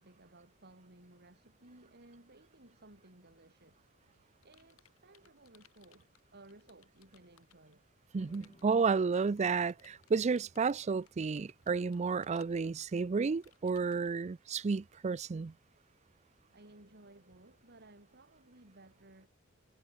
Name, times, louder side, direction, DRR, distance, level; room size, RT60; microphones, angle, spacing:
voice 1, 0.0-7.8 16.5-19.3, right 2 dB, 50° right, 5.9 m, -59 dB
Computer keyboard, 3.7-7.7 8.3-14.1, left 9 dB, 80° left, 3.5 m, -67 dB
sound 1, 8.1-14.4, equal, 25° left, 5.3 m, -67 dB
voice 2, 8.1-15.5, right 5 dB, 30° right, 0.4 m, -32 dB
head